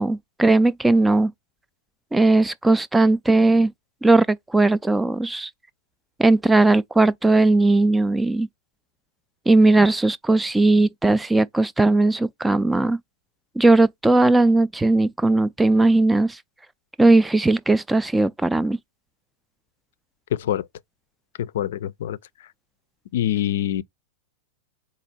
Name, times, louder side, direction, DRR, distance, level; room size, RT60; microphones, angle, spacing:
voice 1, 0.0-1.3 2.1-3.7 4.0-5.5 6.2-8.5 9.5-13.0 13.6-16.4 17.0-18.8, right 2 dB, 10° right, 0.3 m, -18 dB
voice 2, 20.3-20.7 21.4-22.2 23.1-23.8, left 11 dB, 70° left, 0.4 m, -25 dB
4.2 x 2.4 x 4.1 m
hypercardioid pair, 100°, 0 cm